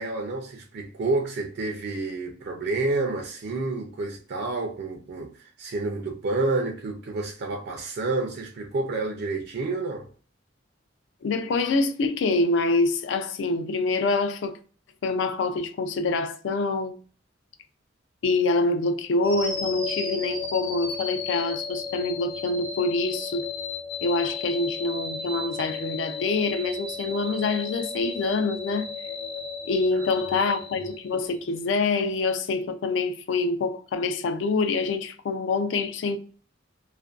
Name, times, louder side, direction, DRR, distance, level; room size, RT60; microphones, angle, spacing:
voice 1, 0.0-10.1 29.9-30.0 30.4-30.5, right 3 dB, 55° right, 0.4 m, -29 dB
voice 2, 11.2-14.6 15.0-17.0 18.2-23.5 24.0-28.9 29.7-36.2, left 3 dB, 70° left, 0.4 m, -26 dB
sound 1, 19.2-31.4, left 5 dB, 45° left, 0.9 m, -34 dB
2.5 x 2.1 x 2.3 m
head